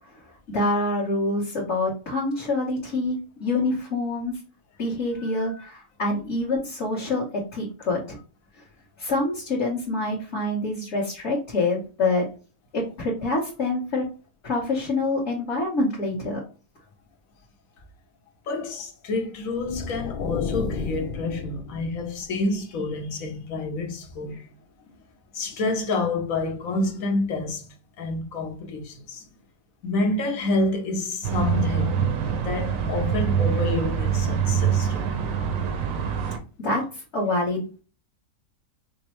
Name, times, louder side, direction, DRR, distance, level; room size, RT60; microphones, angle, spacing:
voice 1, 0.5-4.4 4.8-8.2 9.0-12.2 12.7-14.0 14.4-16.4 36.6-37.7, left 2 dB, 50° left, 1.4 m, -26 dB
voice 2, 5.2-5.7 18.5-24.5 25.3-27.7 28.0-29.3 29.8-32.1 32.4-35.2, left 2 dB, 70° left, 1.1 m, -28 dB
sound 1, 19.4-22.4, left 4 dB, 85° left, 0.4 m, -33 dB
sound 2, 31.2-36.4, right 7 dB, 70° right, 1.0 m, -24 dB
5.0 x 2.0 x 3.0 m
omnidirectional pair, 1.6 m